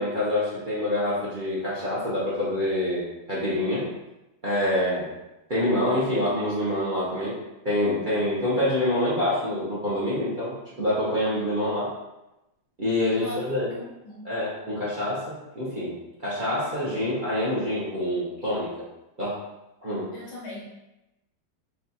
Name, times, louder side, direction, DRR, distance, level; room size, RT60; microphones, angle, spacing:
voice 1, 0.0-3.9 4.4-5.1 5.5-7.3 7.6-11.9 12.8-13.7 14.2-15.9 16.2-18.9 19.2-19.4 19.8-20.1, left 1 dB, 55° right, -8 dB, 0.5 m, -26 dB
voice 2, 13.1-14.3 20.1-20.6, left 1 dB, 65° left, -3 dB, 1.1 m, -40 dB
4.2 x 2.3 x 4.0 m, 0.96 s
omnidirectional pair, 2.2 m